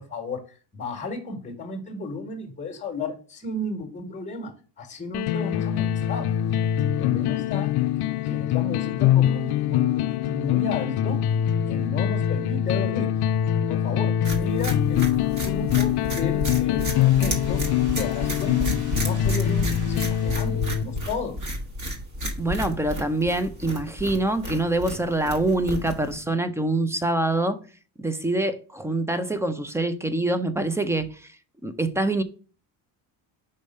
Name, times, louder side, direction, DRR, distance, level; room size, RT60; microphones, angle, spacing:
voice 1, 0.0-6.3 6.8-11.2 11.7-13.1 13.7-18.7 19.0-21.4, left 3 dB, 15° left, 1.3 m, -34 dB
sound 1, 5.1-21.1, left 11 dB, 55° left, 0.5 m, -24 dB
sound 2, 14.2-26.2, equal, 35° right, 1.5 m, -32 dB
sound 3, 16.8-20.9, right 3 dB, 85° right, 2.6 m, -45 dB
voice 2, 22.4-27.6 28.0-31.3 31.6-32.2, right 2 dB, 5° right, 0.3 m, -25 dB
5.4 x 3.4 x 5.3 m
cardioid pair, 115°, 48 cm